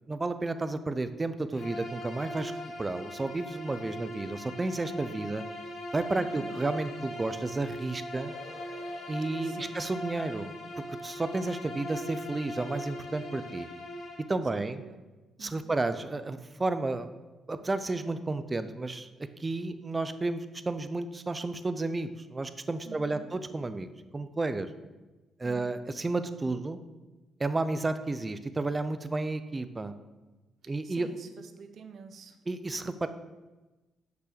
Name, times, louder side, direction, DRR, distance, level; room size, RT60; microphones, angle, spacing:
voice 1, 0.1-5.4 5.9-8.3 9.1-10.5 11.0-13.7 14.3-14.8 15.4-17.1 17.5-19.1 19.4-23.9 24.1-24.7 25.4-26.8 27.4-29.9 30.7-31.1 32.5-33.1, right 2 dB, 25° right, 11 dB, 0.6 m, -32 dB
Bowed string instrument, 1.5-14.3, left 1 dB, 65° left, 1.9 m, -40 dB
voice 2, 6.2-6.6 9.4-9.8 14.5-15.0 15.4-15.7 22.8-23.3 25.4-25.7 30.6-32.4, right 6 dB, 60° right, 8 dB, 0.8 m, -48 dB
sound 1, 8.2-14.9 15.2-15.3, left 3 dB, 85° left, 2.2 m, -55 dB
6.1 x 5.6 x 6.7 m, 1.2 s
cardioid pair, 90°, 0 cm